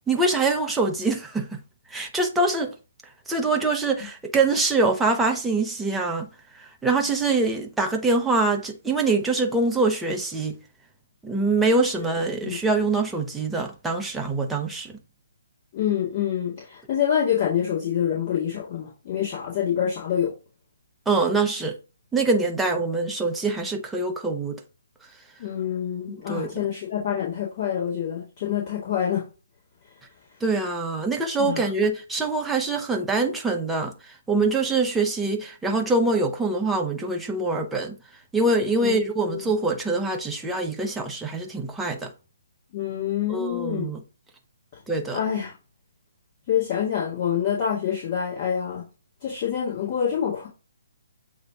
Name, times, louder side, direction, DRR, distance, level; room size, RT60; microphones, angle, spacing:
voice 1, 0.0-1.6 1.9-2.7 3.3-6.3 6.5-10.6 11.2-15.0 21.1-21.8 22.1-24.6 26.1-26.5 30.4-38.0 38.3-42.1 43.3-44.0 44.9-45.2, right 3 dB, 5° right, 1.0 m, -24 dB
voice 2, 15.7-20.3 25.4-29.2 31.4-31.7 38.8-39.0 39.3-39.5 42.7-43.9 45.1-45.5 46.5-48.9 49.2-50.5, left 9 dB, 40° left, 2.4 m, -26 dB
7.9 x 3.3 x 3.7 m
figure-of-eight pair, 135°, 0 cm